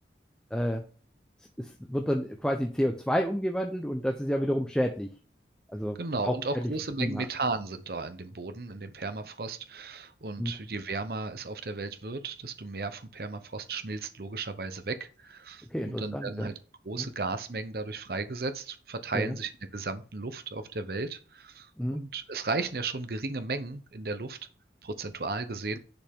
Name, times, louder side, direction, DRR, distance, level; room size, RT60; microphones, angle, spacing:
voice 1, 0.5-0.8 1.6-5.1 5.7-6.0 6.2-6.7 7.0-7.2 10.4-10.5 15.7-16.5 17.0-17.1 19.1-19.3 21.8-22.0, equal, 5° left, 0.7 m, -29 dB
voice 2, 6.0-16.5 16.8-24.4 24.8-25.8, right 3 dB, 55° right, 0.8 m, -35 dB
10.5 x 5.5 x 3.6 m
head